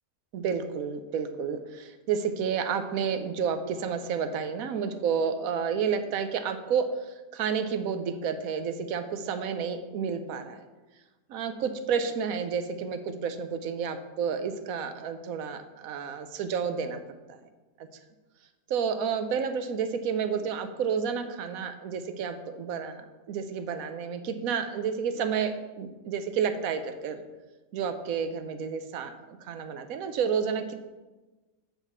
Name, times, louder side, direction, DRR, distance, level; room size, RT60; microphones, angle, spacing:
voice 1, 0.3-6.9 7.3-10.6 11.3-17.0 17.3-17.4 18.7-27.2 27.7-30.7, right 6 dB, 75° right, 9 dB, 1.2 m, -30 dB
7.3 x 5.3 x 7.2 m, 1.2 s
omnidirectional pair, 1.5 m